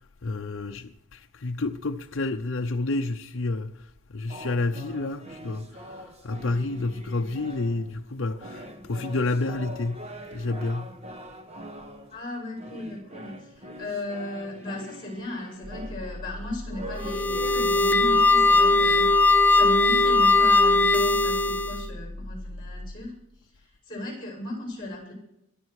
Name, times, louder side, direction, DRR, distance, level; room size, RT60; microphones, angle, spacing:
voice 1, 0.2-3.7 4.1-6.0 6.2-10.0 10.3-10.9, left 2 dB, 55° left, 0.7 m, -29 dB
sound 1, 4.3-8.0 8.3-17.9, right 1 dB, 30° right, 1.4 m, -43 dB
voice 2, 12.1-25.1, left 1 dB, 20° left, 7.4 m, -36 dB
sound 2, 15.6-22.9, left 1 dB, 45° right, 2.1 m, -38 dB
sound 3, 17.0-21.9, left 2 dB, 5° left, 0.6 m, -19 dB
22.0 x 13.5 x 4.8 m
head